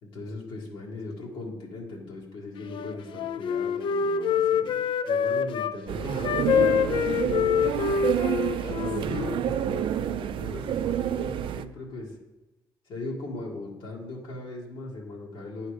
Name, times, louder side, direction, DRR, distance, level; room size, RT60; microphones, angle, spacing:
voice 1, 0.0-8.1 8.6-12.1 12.9-15.7, left 2 dB, 80° left, -3 dB, 1.8 m, -38 dB
Wind instrument woodwind instrument, 2.6-5.7 6.2-9.4, left 7 dB, 65° left, 0.4 m, -26 dB
sound 1, 5.9-11.6, right 10 dB, 70° right, 0.4 m, -29 dB
10.0 x 4.2 x 4.9 m, 1.0 s
cardioid pair, 95°, 9 cm